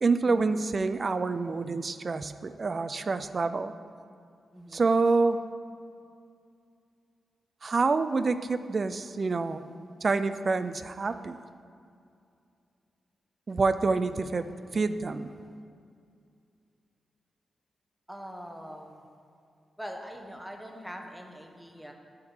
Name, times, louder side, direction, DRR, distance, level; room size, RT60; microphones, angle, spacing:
voice 1, 0.0-3.7 4.7-5.4 7.6-9.6 10.0-11.4 13.5-15.3, right 4 dB, 50° right, 12 dB, 0.4 m, -27 dB
voice 2, 4.5-4.9 18.1-19.0 19.8-21.9, equal, 5° right, 2 dB, 1.0 m, -43 dB
7.6 x 3.6 x 6.5 m, 2.4 s
cardioid pair, 60°, 0 cm